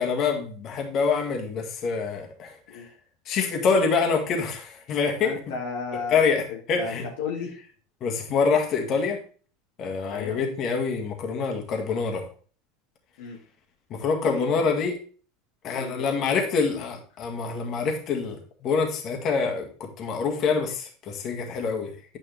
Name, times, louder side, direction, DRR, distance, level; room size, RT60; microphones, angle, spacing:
voice 1, 0.0-2.8 3.3-5.3 6.1-6.4 6.7-7.0 8.0-9.2 9.8-12.3 13.9-15.0 15.6-22.2, left 5 dB, 45° left, 2 dB, 2.0 m, -26 dB
voice 2, 5.2-6.2 6.5-7.6 10.1-10.4 13.2-13.4 14.2-14.9 15.7-16.8, left 5 dB, 70° left, -1 dB, 1.7 m, -35 dB
9.2 x 5.4 x 3.4 m, 0.41 s
hypercardioid pair, 85°, 0 cm